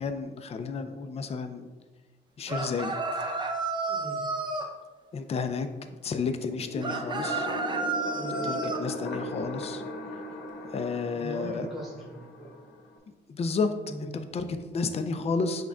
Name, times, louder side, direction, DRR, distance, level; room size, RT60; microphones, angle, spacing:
voice 1, 0.0-1.7 2.4-3.0 5.1-5.7 6.0-7.5 8.4-9.8 10.7-11.7 13.3-13.7 14.0-15.7, left 4 dB, 30° left, 8 dB, 0.4 m, -31 dB
sound 1, 2.5-4.7 6.8-8.8, right 3 dB, 25° right, 0.5 m, -31 dB
voice 2, 3.9-4.2 5.8-5.9 8.1-8.4 11.1-12.6 13.8-14.1, right 1 dB, ahead, -5 dB, 1.2 m, -40 dB
sound 2, 6.4-13.0, left 1 dB, 70° left, 0.8 m, -38 dB
6.1 x 2.3 x 3.7 m, 1.3 s
cardioid pair, 90°, 20 cm